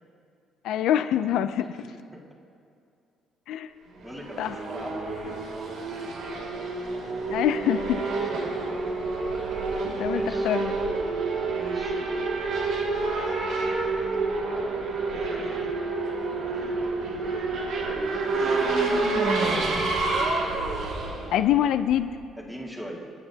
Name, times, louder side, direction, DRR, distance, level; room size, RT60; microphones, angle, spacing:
voice 1, 0.6-1.8 3.5-3.7 4.4-4.5 7.3-8.0 9.8-10.7 21.3-22.1, left 11 dB, 75° left, 9 dB, 0.5 m, -25 dB
voice 2, 1.6-2.2 4.0-6.0 8.1-8.4 9.3-9.5 10.1-10.5 11.5-13.2 14.9-15.7 16.3-17.5 18.5-18.8 22.4-23.1, equal, ahead, -3 dB, 2.1 m, -43 dB
Race car auto racing / Accelerating revving vroom, 4.0-22.2, right 3 dB, 65° right, 2.9 m, -28 dB
28.0 x 10.0 x 2.9 m, 2.5 s
cardioid pair, 155°, 0 cm